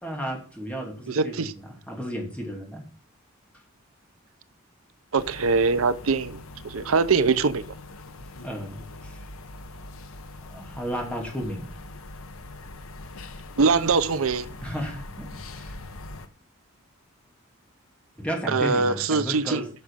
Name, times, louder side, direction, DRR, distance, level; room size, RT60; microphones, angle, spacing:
voice 1, 0.0-2.8 8.4-9.2 10.5-11.7 14.6-15.8 18.2-19.7, equal, 5° left, 2.8 m, -33 dB
voice 2, 1.1-1.5 5.1-7.7 13.6-14.5 18.5-19.6, right 4 dB, 80° right, 0.7 m, -23 dB
sound 1, 5.2-16.3, left 2 dB, 80° left, 1.1 m, -42 dB
10.0 x 6.2 x 5.7 m
head